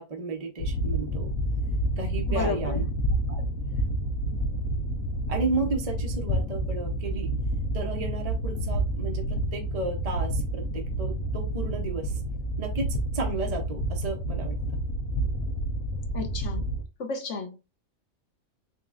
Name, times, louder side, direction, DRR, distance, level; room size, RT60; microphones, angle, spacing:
voice 1, 0.0-1.3 2.0-2.8 3.3-3.4 5.3-7.3 7.7-12.2 12.6-14.6, right 3 dB, 35° right, 0.8 m, -33 dB
sound 1, 0.6-16.8, right 1 dB, 85° left, 1.2 m, -29 dB
voice 2, 2.3-2.8 16.1-16.7 17.0-17.6, left 4 dB, 65° left, 1.2 m, -32 dB
4.0 x 3.5 x 2.5 m
omnidirectional pair, 1.4 m